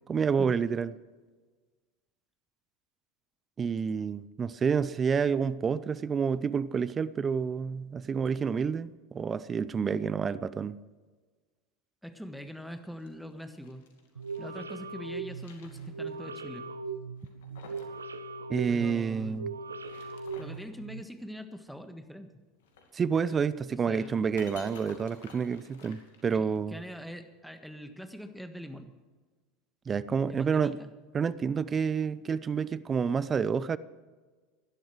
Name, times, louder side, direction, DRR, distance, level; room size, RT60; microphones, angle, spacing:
voice 1, 0.1-0.9 3.6-10.8 18.5-19.5 22.9-26.8 29.9-30.8 31.1-33.8, right 6 dB, 30° right, 17 dB, 0.6 m, -29 dB
voice 2, 12.0-13.8 14.4-16.7 18.7-19.4 20.4-22.3 23.7-24.2 26.3-28.9 30.3-30.9, equal, ahead, 8 dB, 1.5 m, -43 dB
sound 1, 12.8-14.6 15.0-16.3 16.6-16.7 17.2-18.0 18.2-18.3 19.6-20.7 22.6-26.7, left 5 dB, 70° left, 2.5 m, -52 dB
Sci Fi Scanner (Loopable), 14.2-21.0, right 4 dB, 85° right, 0.7 m, -39 dB
17.0 x 12.0 x 4.7 m, 1.4 s
hypercardioid pair, 80°, 0 cm